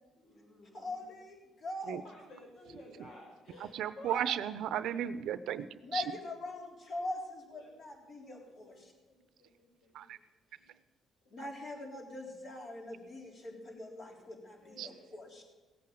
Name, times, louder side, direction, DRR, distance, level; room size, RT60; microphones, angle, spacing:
voice 1, 0.2-1.0 2.0-4.4 7.5-7.7 8.2-10.2 10.5-10.7 11.2-11.4 12.7-13.0 14.6-15.3, equal, 75° left, -1 dB, 5.8 m, -52 dB
voice 2, 0.7-2.0 5.8-8.9 11.3-15.4, left 2 dB, 55° left, 1 dB, 3.9 m, -42 dB
voice 3, 3.6-6.0 9.9-10.2 14.8-14.9, right 10 dB, 80° right, 14 dB, 0.7 m, -35 dB
17.0 x 8.6 x 7.9 m, 1.2 s
cardioid pair, 90°, 0 cm